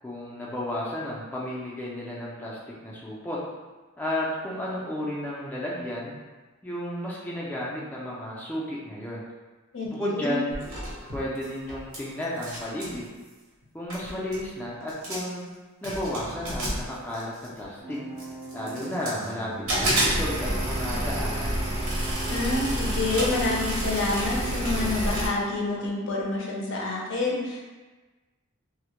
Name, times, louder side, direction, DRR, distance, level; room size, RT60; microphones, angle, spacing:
voice 1, 0.0-3.4 4.0-6.1 6.6-9.2 9.8-10.6 11.1-13.1 13.7-15.4 15.8-18.0 18.5-21.6, left 1 dB, 10° left, -6 dB, 0.3 m, -33 dB
voice 2, 9.7-10.4 22.3-27.7, left 3 dB, 65° left, -2 dB, 0.5 m, -28 dB
sound 1, 10.5-12.0 12.2-13.0 13.6-13.7 13.9-14.5 14.9-15.4 15.8-17.6 18.2-19.3 19.7-25.3, right 1 dB, 90° right, 0.8 m, -29 dB
sound 2, 17.8-25.0, right 3 dB, 55° right, 0.4 m, -38 dB
2.1 x 2.0 x 2.9 m, 1.3 s
head